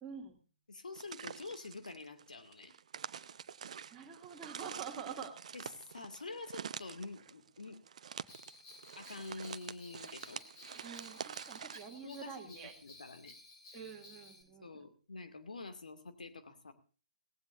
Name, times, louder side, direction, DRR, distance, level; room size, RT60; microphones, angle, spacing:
voice 1, 0.0-0.4 3.9-5.3 10.7-12.7 13.7-14.8, right 7 dB, 15° right, -2 dB, 2.5 m, -47 dB
voice 2, 0.7-2.7 5.5-5.7 5.9-7.8 9.0-10.4 12.0-12.6 12.8-13.3 14.6-16.7, left 3 dB, 70° left, 8 dB, 2.3 m, -47 dB
sound 1, 0.9-11.8, right 7 dB, 55° right, 0.7 m, -47 dB
Bell, 8.3-14.4, left 2 dB, 35° left, 7.2 m, -56 dB
18.0 x 16.0 x 2.6 m, 0.37 s
figure-of-eight pair, 125°, 4 cm